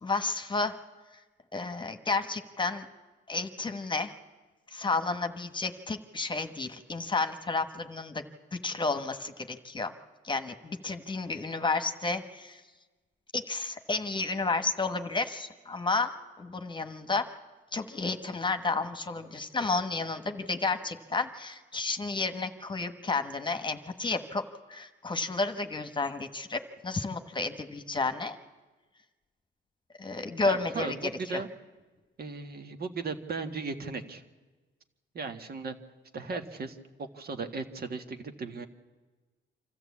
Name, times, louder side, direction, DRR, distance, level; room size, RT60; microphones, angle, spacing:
voice 1, 0.0-0.8 1.5-2.9 3.3-4.1 4.7-8.2 8.5-9.9 10.2-12.6 13.3-16.1 16.4-17.3 17.7-24.4 24.7-28.4 30.0-31.4, left 3 dB, 25° left, 8 dB, 1.4 m, -31 dB
voice 2, 30.4-31.5 32.2-34.2 35.1-35.8 36.1-38.7, right 4 dB, 50° right, 6 dB, 1.7 m, -36 dB
26.0 x 13.5 x 8.5 m, 1.3 s
cardioid pair, 90°, 20 cm